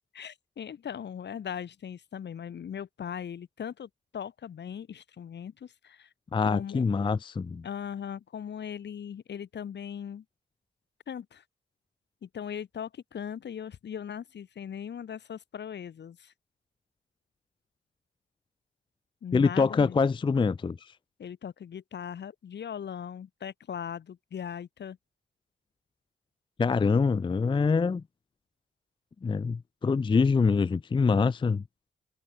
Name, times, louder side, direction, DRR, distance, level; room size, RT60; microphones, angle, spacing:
voice 1, 0.1-6.1 6.5-6.8 7.6-10.2 11.1-11.4 12.2-16.3 19.2-20.0 21.2-25.0, left 8 dB, 55° left, 0.8 m, -39 dB
voice 2, 6.3-7.6 19.3-20.8 26.6-28.0 29.2-31.6, left 5 dB, 25° left, 0.4 m, -25 dB
cardioid pair, 80°, 21 cm